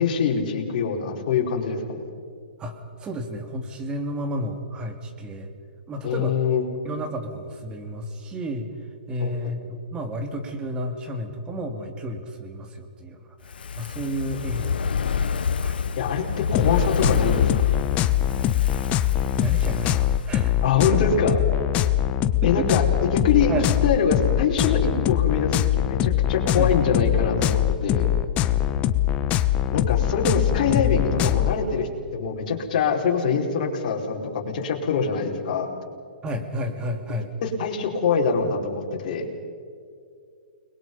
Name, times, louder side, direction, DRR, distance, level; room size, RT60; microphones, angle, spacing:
voice 1, 0.0-2.0 6.0-6.6 9.2-9.3 16.0-17.5 20.6-21.4 22.4-22.8 23.1-23.5 23.8-28.1 29.7-35.7 37.4-39.3, left 6 dB, 50° left, 0 dB, 4.5 m, -24 dB
voice 2, 2.6-5.5 5.9-6.4 6.8-8.7 9.1-15.8 18.2-18.5 19.3-20.5 20.9-21.1 22.4-22.7 23.5-23.7 26.5-26.7 30.4-31.4 36.2-37.3, equal, 15° right, 6 dB, 2.3 m, -32 dB
Fire, 13.4-20.8 21.1-21.2, left 6 dB, 75° left, 0.9 m, -28 dB
sound 1, 16.5-31.5, left 11 dB, 25° left, 1.0 m, -22 dB
30.0 x 21.5 x 5.4 m, 2.3 s
hypercardioid pair, 140°, 5 cm